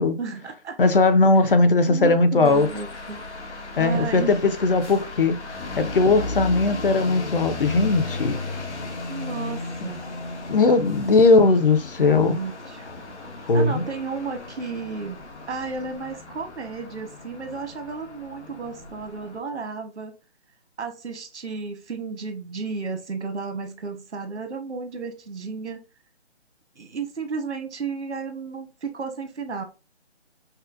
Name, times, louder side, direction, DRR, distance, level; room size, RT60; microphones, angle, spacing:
voice 1, 0.0-0.8 1.9-3.3 3.8-4.5 9.1-10.0 12.0-12.9 13.5-20.1 20.8-25.8 26.8-29.6, right 4 dB, 80° right, 1.2 m, -33 dB
voice 2, 0.8-2.7 3.8-5.4 5.8-8.4 10.5-12.4 13.5-13.8, left 3 dB, 50° left, 0.7 m, -19 dB
sound 1, 2.4-19.4, left 2 dB, 85° left, 1.3 m, -35 dB
5.4 x 2.0 x 2.5 m
hypercardioid pair, 170°, 34 cm